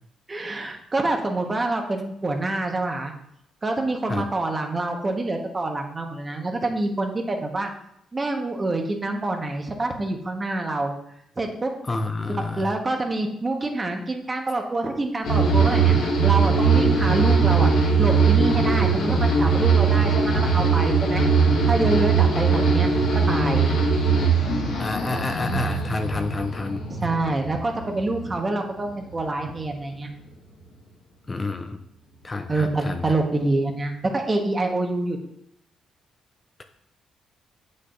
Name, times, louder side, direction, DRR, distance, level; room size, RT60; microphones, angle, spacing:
voice 1, 0.3-3.1 3.6-7.7 8.1-10.9 11.4-11.7 12.3-15.9 16.2-17.7 18.0-21.2 21.7-22.9 23.3-23.7 26.9-30.1 32.5-35.2, right 2 dB, 25° right, 3 dB, 1.2 m, -26 dB
voice 2, 11.9-12.7 24.8-26.8 31.3-31.8 32.2-33.0, left 3 dB, 25° left, 6 dB, 0.5 m, -29 dB
sound 1, 15.2-28.6 28.9-29.5, right 4 dB, 80° left, 1.4 m, -20 dB
7.7 x 6.4 x 2.5 m, 0.75 s
cardioid pair, 90°, 0 cm